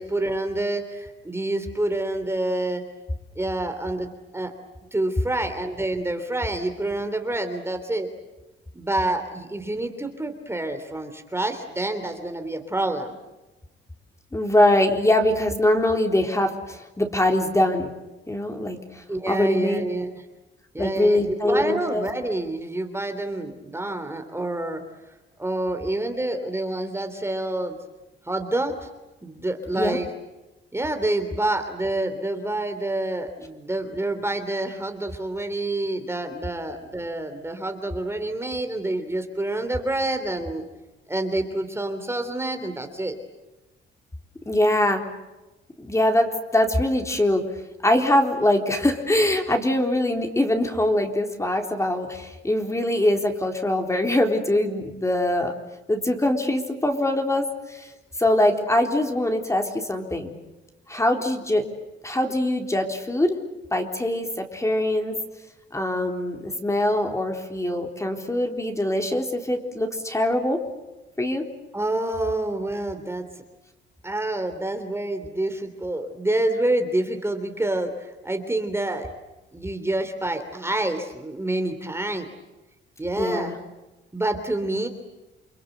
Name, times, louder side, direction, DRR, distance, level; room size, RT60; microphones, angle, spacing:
voice 1, 0.0-2.8 3.3-4.5 4.9-8.1 8.7-13.2 19.1-20.1 20.7-24.8 25.4-27.8 28.2-28.9 29.2-30.1 30.7-40.6 41.1-43.1 71.7-73.3 74.0-79.1 79.5-82.3 83.0-83.6 84.1-84.9, right 2 dB, 10° right, 6 dB, 3.3 m, -27 dB
voice 2, 14.3-17.9 18.3-19.8 20.8-22.1 29.7-30.0 44.5-45.0 45.8-47.4 47.8-55.5 55.9-57.9 58.2-60.3 60.9-61.6 62.0-63.4 63.7-65.2 65.7-70.6 71.2-71.4 83.2-83.6, left 1 dB, 15° left, 3 dB, 3.9 m, -23 dB
29.5 x 23.0 x 8.0 m, 1.1 s
cardioid pair, 90°, 20 cm